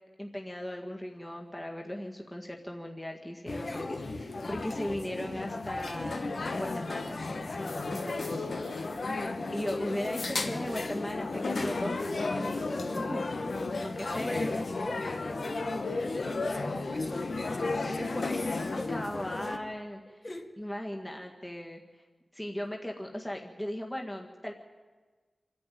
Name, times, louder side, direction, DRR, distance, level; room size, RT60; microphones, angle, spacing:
voice 1, 0.2-4.0 4.5-6.3 6.5-9.0 9.5-13.3 13.8-14.5 18.9-20.2 20.6-22.0 22.3-24.5, left 1 dB, 15° left, 1 dB, 1.7 m, -38 dB
sound 1, 3.5-19.6, left 3 dB, 70° left, 1.4 m, -34 dB
voice 2, 3.6-4.1 4.3-4.5 9.0-9.4 13.7-18.9 20.2-20.5, left 1 dB, 40° left, 2 dB, 2.3 m, -41 dB
26.0 x 10.5 x 9.3 m, 1.4 s
wide cardioid pair, 60°, 0 cm